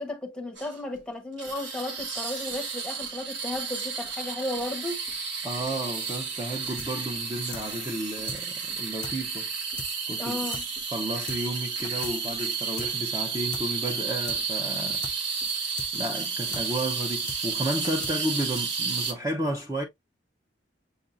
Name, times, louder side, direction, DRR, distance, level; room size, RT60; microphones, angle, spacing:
voice 1, 0.0-5.0 10.2-10.6, left 1 dB, 5° left, 1.0 m, -34 dB
sound 1, 0.6-1.0 1.4-19.1, right 5 dB, 75° right, 1.4 m, -32 dB
voice 2, 5.4-9.5 10.1-10.5 10.9-15.0 15.9-19.8, right 1 dB, 15° right, 0.7 m, -32 dB
sound 2, 6.8-6.9 7.2-7.3 7.5-7.7 7.9-8.0 8.3-8.4 8.7-8.8 9.0-9.2 9.4-9.5 9.8-9.9 10.2-10.3 10.5-10.7 10.9-11.0 11.3-11.4 11.7-12.2 12.4-12.5 12.8-12.9 13.2-13.3 13.5-13.7 13.9-14.0 14.3-14.4 14.7-14.8 15.0-15.2 15.4-15.5 15.8-15.9 16.2-16.3 16.5-16.7 16.9-17.0 17.3-17.4 17.7-18.2 18.4-18.5, left 4 dB, 25° left, 0.6 m, -39 dB
6.9 x 2.6 x 2.4 m
head